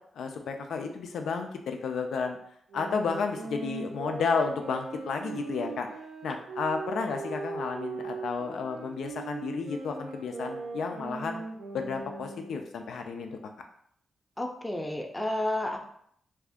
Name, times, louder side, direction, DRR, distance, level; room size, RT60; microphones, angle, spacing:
voice 1, 0.1-2.4 2.7-5.9 6.2-11.4 11.7-13.4, left 5 dB, 80° left, 4 dB, 0.4 m, -32 dB
sound 1, 2.7-12.7, right 4 dB, 80° right, 0.6 m, -39 dB
voice 2, 14.4-15.8, left 1 dB, 10° left, 2 dB, 0.5 m, -31 dB
2.7 x 2.4 x 3.5 m, 0.67 s
cardioid pair, 75°, 0 cm